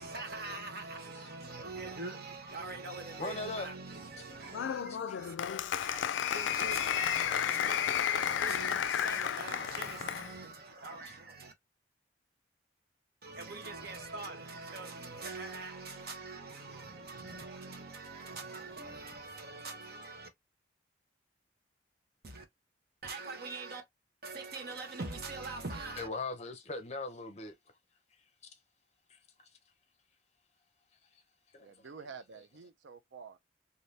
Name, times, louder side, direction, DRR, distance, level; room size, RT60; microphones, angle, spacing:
voice 1, 0.0-5.3 5.8-11.5 13.2-20.3 22.2-22.4 23.0-23.8 24.2-26.1, right 3 dB, 55° right, 0.9 m, -43 dB
voice 2, 3.2-3.7 5.1-5.2 26.0-27.5 29.1-29.2 31.5-31.9, left 3 dB, 35° left, 0.6 m, -39 dB
Applause, 4.5-10.3, left 9 dB, 80° left, 0.3 m, -32 dB
voice 3, 31.6-33.4, right 5 dB, 80° right, 0.5 m, -49 dB
2.7 x 2.6 x 3.2 m
head